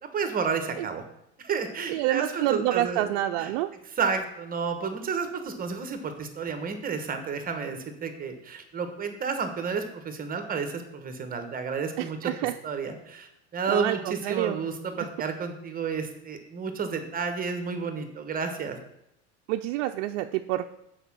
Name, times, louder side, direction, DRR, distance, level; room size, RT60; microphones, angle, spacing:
voice 1, 0.1-1.0 1.4-3.1 3.4-3.5 4.0-12.3 12.6-18.8, right 5 dB, 25° right, 7 dB, 1.1 m, -31 dB
voice 2, 1.9-3.7 12.0-12.6 13.7-14.6 15.0-15.1 19.5-20.6, right 14 dB, 65° right, 5 dB, 0.5 m, -28 dB
6.6 x 4.8 x 6.0 m, 0.82 s
supercardioid pair, 110°, 35 cm